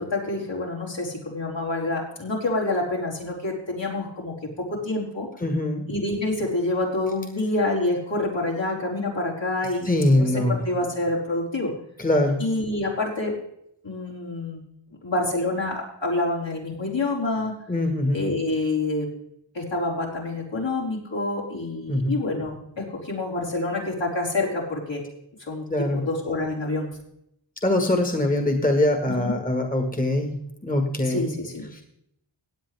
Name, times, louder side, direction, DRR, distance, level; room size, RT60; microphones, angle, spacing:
voice 1, 0.0-5.3 5.9-11.7 12.4-13.3 13.8-14.6 15.0-17.5 18.1-19.1 19.5-25.0 25.4-26.9 29.1-29.3 31.0-31.7, left 2 dB, 70° left, -4 dB, 4.9 m, -27 dB
voice 2, 5.4-5.8 9.9-10.5 12.0-12.4 17.7-18.2 21.9-22.2 25.7-26.0 27.6-30.3 30.6-31.3 31.7-31.8, left 1 dB, 20° left, 4 dB, 1.7 m, -22 dB
16.5 x 9.7 x 3.5 m, 0.74 s
wide cardioid pair, 70°, 47 cm